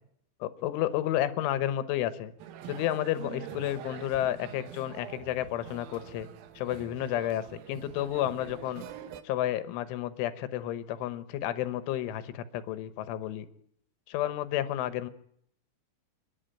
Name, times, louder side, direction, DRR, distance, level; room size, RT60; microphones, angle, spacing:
voice 1, 0.4-2.3 2.7-6.3 6.6-8.9 9.2-13.5 14.1-15.1, left 12 dB, 75° left, 13 dB, 3.3 m, -31 dB
sound 1, 2.4-9.2, right 10 dB, 85° right, 2.0 m, -45 dB
29.0 x 11.0 x 9.0 m, 0.69 s
omnidirectional pair, 5.9 m